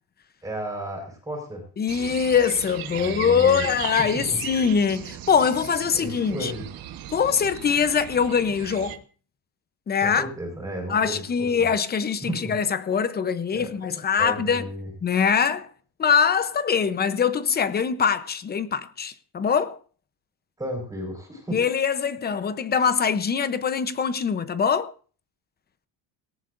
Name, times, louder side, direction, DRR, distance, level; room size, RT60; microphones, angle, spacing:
voice 1, 0.4-1.6 2.9-3.7 4.0-4.2 5.9-6.6 10.0-11.7 12.2-12.5 13.5-13.7 14.2-14.9 20.6-21.6, right 1 dB, 10° right, 5.1 m, -33 dB
voice 2, 1.8-6.5 7.1-9.0 9.9-10.3 10.9-14.7 15.0-15.7 16.0-19.8 21.5-24.9, left 6 dB, 25° left, 0.8 m, -23 dB
sound 1, 1.9-9.0, right 11 dB, 55° right, 1.3 m, -37 dB
18.5 x 18.0 x 2.6 m
cardioid pair, 160°, 41 cm